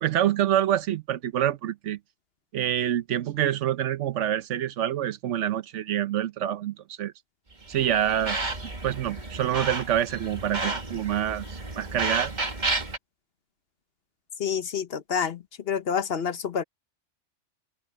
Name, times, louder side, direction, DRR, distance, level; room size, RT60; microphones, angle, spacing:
voice 1, 0.0-2.0 2.5-7.1 7.7-8.4 8.8-12.3, right 11 dB, 70° right, 1.0 m, -26 dB
sound 1, 7.6-13.0, right 3 dB, 35° right, 2.0 m, -32 dB
voice 2, 14.4-16.6, left 7 dB, 55° left, 1.0 m, -28 dB
omnidirectional pair, 1.3 m